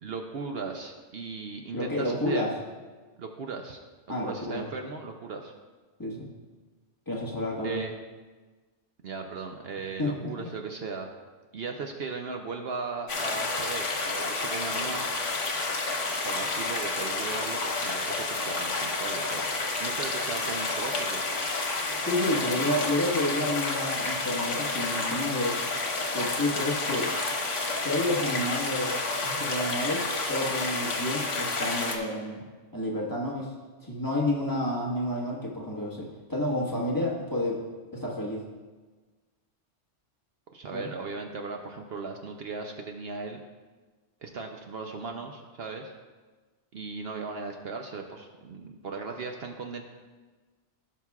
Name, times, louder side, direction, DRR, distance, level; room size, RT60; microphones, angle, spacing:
voice 1, 0.0-2.5 3.2-3.8 4.2-5.5 7.6-7.9 9.0-11.1 11.5-15.1 16.2-21.2 22.3-22.7 40.5-43.4 44.2-45.9 46.7-49.8, right 4 dB, 60° right, 3 dB, 0.8 m, -37 dB
voice 2, 1.7-2.5 4.1-4.7 6.0-6.3 7.1-7.8 10.0-10.5 22.0-25.6 26.1-27.1 27.7-32.4 32.7-33.5 33.8-37.6 37.9-38.4 40.7-40.9, left 1 dB, 15° left, -5 dB, 1.3 m, -30 dB
sound 1, 13.1-32.0, left 3 dB, 75° left, 1.4 m, -30 dB
16.5 x 6.0 x 2.4 m, 1.3 s
omnidirectional pair, 1.2 m